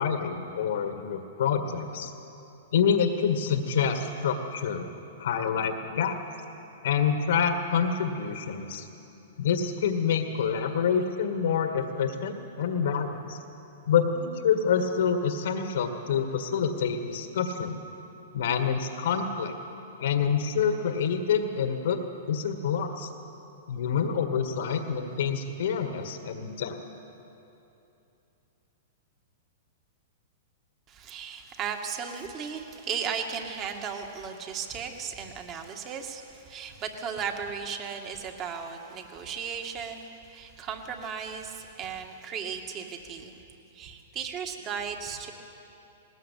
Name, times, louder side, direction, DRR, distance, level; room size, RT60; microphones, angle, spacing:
voice 1, 0.0-2.1 2.7-4.9 5.2-6.2 6.8-8.9 9.4-13.4 13.9-17.8 18.3-19.5 20.0-22.0 22.3-23.1 23.7-26.8, left 7 dB, 75° left, 5 dB, 1.8 m, -27 dB
voice 2, 30.9-43.4 43.7-45.3, right 6 dB, 35° right, 4 dB, 2.3 m, -36 dB
20.0 x 18.5 x 8.6 m, 2.9 s
hypercardioid pair, 120°, 0 cm